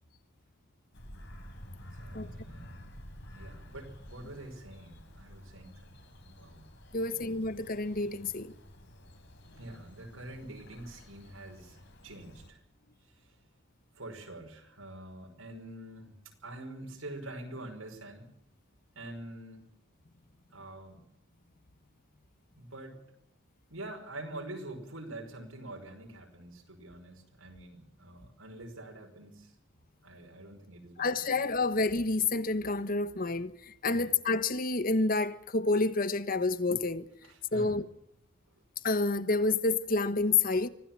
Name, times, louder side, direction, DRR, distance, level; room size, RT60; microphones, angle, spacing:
Bird vocalization bird call bird song, 0.9-12.5, equal, 60° left, 4.5 m, -50 dB
voice 1, 2.0-2.9 3.3-6.7 7.0-7.3 9.6-12.6 13.1-13.3 13.9-16.1 16.4-18.3 19.0-19.7 20.5-21.0 22.6-23.0 23.7-29.5 30.0-31.4 33.9-34.1 37.2-37.8, right 1 dB, 90° right, 5.5 m, -46 dB
voice 2, 6.9-8.5 31.0-37.1 37.5-37.8 38.8-40.7, left 3 dB, 45° left, 1.2 m, -29 dB
24.5 x 16.0 x 7.5 m
head